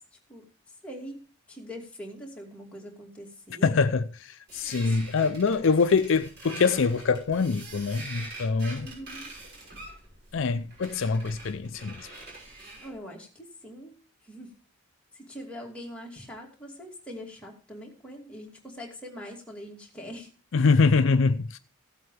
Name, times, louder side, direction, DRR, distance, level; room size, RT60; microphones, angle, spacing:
voice 1, 0.8-3.8 4.7-5.3 8.8-9.3 12.8-13.9 14.2-14.6 15.1-20.3, equal, 5° left, 2.6 m, -43 dB
voice 2, 3.6-8.9 10.3-12.1 20.5-21.6, left 4 dB, 65° left, 0.5 m, -24 dB
sound 1, 4.5-13.0, right 2 dB, 50° right, 6.1 m, -44 dB
16.0 x 8.1 x 3.3 m
head